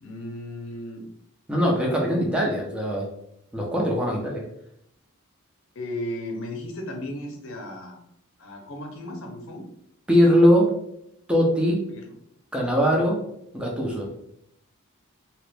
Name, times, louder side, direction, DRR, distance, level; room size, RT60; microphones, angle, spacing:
voice 1, 0.0-1.1 5.7-8.0 8.4-9.7 11.9-12.1, left 1 dB, 65° left, 2 dB, 0.7 m, -35 dB
voice 2, 1.5-3.1 3.5-4.5 10.1-10.8 11.3-11.8 12.5-13.2 13.5-14.1, equal, 5° right, -2 dB, 0.6 m, -21 dB
2.9 x 2.5 x 3.3 m, 0.77 s
head